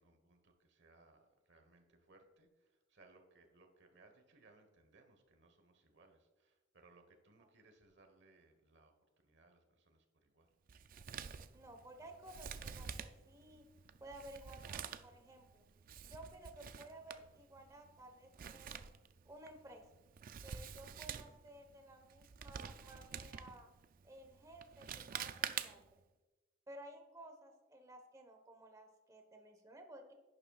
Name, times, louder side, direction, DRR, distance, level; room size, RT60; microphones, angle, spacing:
voice 1, 0.0-10.5 13.8-14.0, right 3 dB, 65° right, 5 dB, 1.3 m, -67 dB
Male speech man speaking, 10.7-26.0, right 8 dB, 50° right, 0.4 m, -48 dB
voice 2, 11.5-13.6 14.0-15.6 16.0-18.9 19.2-19.9 20.4-23.7 24.0-26.0 26.7-30.1, right 1 dB, 20° right, 4 dB, 1.2 m, -55 dB
11.0 x 9.8 x 2.4 m, 1.2 s
head